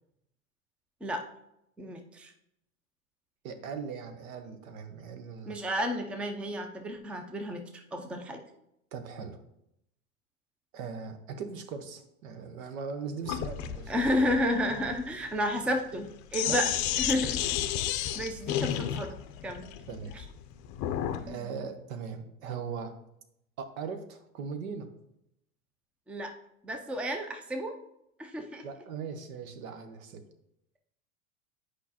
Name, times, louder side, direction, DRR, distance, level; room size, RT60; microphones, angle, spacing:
voice 1, 1.8-2.3 5.5-7.6 7.9-8.4 13.9-17.6 17.8-19.7 20.1-20.2 21.2-21.5 26.1-26.3 26.6-27.8 28.2-28.7, equal, 5° right, 5 dB, 0.5 m, -32 dB
voice 2, 3.4-5.5 8.9-9.4 10.7-14.1 16.5-16.6 18.6-18.8 19.9-20.1 21.3-23.0 23.6-24.9 28.6-30.2, right 6 dB, 70° right, 8 dB, 1.0 m, -39 dB
Sink (filling or washing), 13.3-21.3, left 11 dB, 45° left, 0.6 m, -32 dB
8.2 x 5.0 x 2.9 m, 0.78 s
hypercardioid pair, 105°, 43 cm